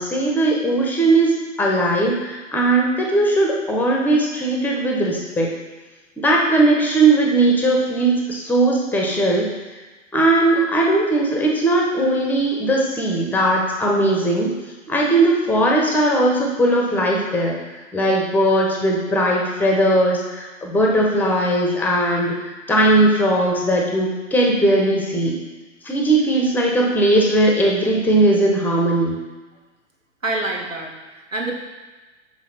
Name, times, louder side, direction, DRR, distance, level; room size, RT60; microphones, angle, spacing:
voice 1, 0.0-5.5 6.2-9.5 10.1-14.5 14.9-17.6 17.9-25.3 25.8-29.2, right 1 dB, 5° left, -1 dB, 1.0 m, -18 dB
voice 2, 30.2-31.5, right 2 dB, 90° right, 1 dB, 1.4 m, -27 dB
5.9 x 5.4 x 5.7 m, 1.2 s
figure-of-eight pair, 115°, 38 cm